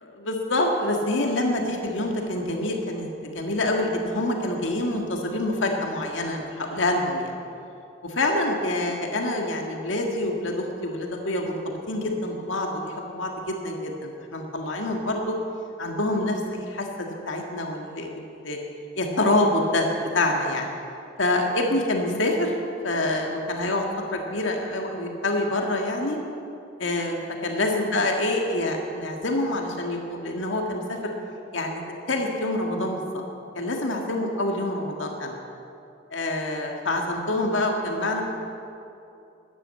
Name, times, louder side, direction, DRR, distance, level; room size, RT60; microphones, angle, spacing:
voice 1, 0.2-7.3 8.0-15.4 15.8-18.6 19.0-19.9 20.1-20.7 21.2-22.5 22.8-23.8 24.1-26.2 26.8-27.2 27.4-31.1 31.5-31.8 32.1-33.2 33.5-35.4 36.1-38.2, left 1 dB, 80° left, 2 dB, 1.8 m, -26 dB
13.0 x 10.0 x 8.2 m, 2.7 s
head